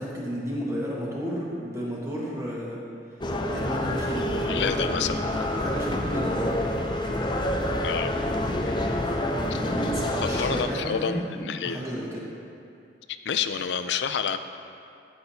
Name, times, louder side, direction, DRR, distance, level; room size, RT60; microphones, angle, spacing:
voice 1, 0.0-2.8 3.4-4.3 5.5-6.9 8.1-12.2, equal, 15° right, -6 dB, 1.5 m, -33 dB
sound 1, 3.2-10.7, left 1 dB, 25° left, 0.5 m, -28 dB
sound 2, 4.0-10.9, equal, 55° right, 0.5 m, -38 dB
voice 2, 4.5-5.2 7.8-8.1 10.2-11.8 13.1-14.4, left 7 dB, 80° left, 10 dB, 0.4 m, -28 dB
16.0 x 6.0 x 2.8 m, 2.5 s
head